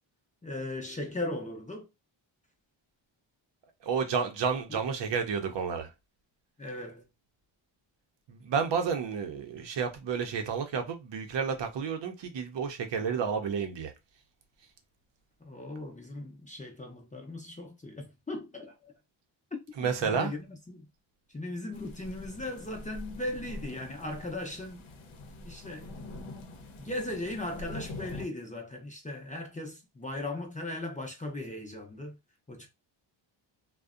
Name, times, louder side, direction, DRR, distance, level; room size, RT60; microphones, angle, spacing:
voice 1, 0.4-1.9 4.7-4.8 6.6-7.0 15.4-18.9 19.5-20.9 21.3-24.8 25.4-25.9 26.8-32.2 32.5-32.7, left 2 dB, 15° left, 0.5 m, -38 dB
voice 2, 3.8-5.9 8.3-13.9 19.7-20.3, right 6 dB, 60° right, 0.6 m, -31 dB
sound 1, 21.7-28.3, left 2 dB, 75° left, 0.7 m, -44 dB
2.5 x 2.1 x 2.4 m
cardioid pair, 100°, 48 cm